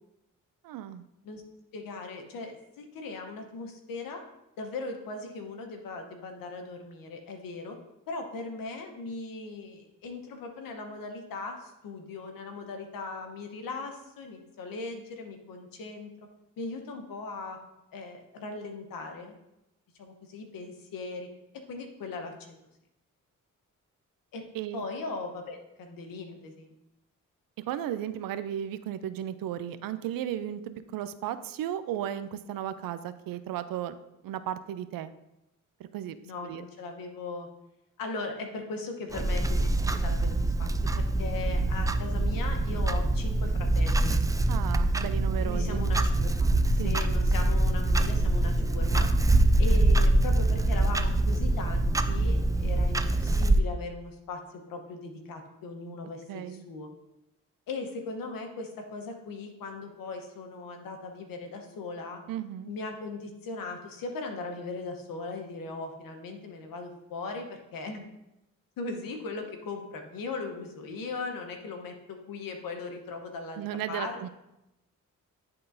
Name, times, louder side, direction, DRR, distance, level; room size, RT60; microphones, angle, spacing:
voice 1, 0.6-1.0 24.5-24.8 27.7-33.9 34.2-35.1 35.9-36.2 36.4-36.6 44.5-45.9 46.8-46.9 56.3-56.7 62.3-62.7 73.6-74.3, right 11 dB, 85° right, 13 dB, 0.5 m, -35 dB
voice 2, 1.7-4.2 4.6-7.8 8.1-16.1 16.6-17.6 17.9-19.4 20.0-21.3 21.7-22.6 24.3-24.4 24.7-26.7 36.2-37.5 38.0-44.2 45.4-46.5 46.8-49.1 49.6-56.9 57.7-62.2 62.7-68.0 68.8-73.6 73.9-74.3, left 3 dB, 85° left, 4 dB, 1.0 m, -39 dB
Clock, 39.1-53.6, right 2 dB, 10° right, 0.3 m, -24 dB
10.5 x 3.8 x 2.6 m, 0.89 s
cardioid pair, 70°, 33 cm